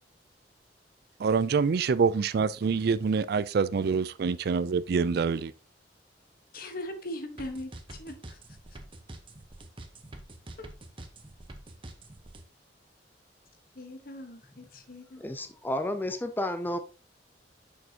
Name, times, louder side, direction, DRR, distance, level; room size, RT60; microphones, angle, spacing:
voice 1, 1.2-5.5, right 5 dB, 60° right, 0.4 m, -26 dB
voice 2, 6.5-8.4 10.6-10.7 13.7-15.2, left 1 dB, 55° left, 1.2 m, -40 dB
sound 1, 7.4-12.4, right 1 dB, 30° right, 0.9 m, -45 dB
voice 3, 15.2-16.8, left 1 dB, 10° left, 0.5 m, -31 dB
6.9 x 6.5 x 2.8 m
head